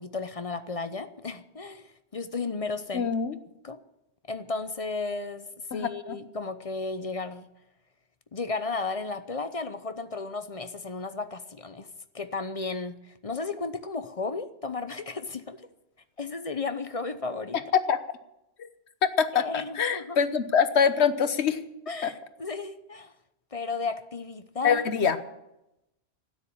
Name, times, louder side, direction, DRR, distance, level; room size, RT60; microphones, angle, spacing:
voice 1, 0.0-3.1 3.6-3.8 4.3-5.5 5.7-7.5 8.3-11.9 12.1-15.6 16.2-17.6 19.3-20.2 21.9-23.1 23.5-24.8, left 3 dB, 35° left, 11 dB, 0.8 m, -34 dB
voice 2, 2.9-3.4 5.7-6.1 17.9-18.0 18.6-18.7 19.0-19.5 19.7-21.6 22.0-22.1 24.6-25.2, left 6 dB, 85° left, 11 dB, 1.3 m, -24 dB
12.5 x 9.8 x 9.9 m, 0.89 s
omnidirectional pair, 1.1 m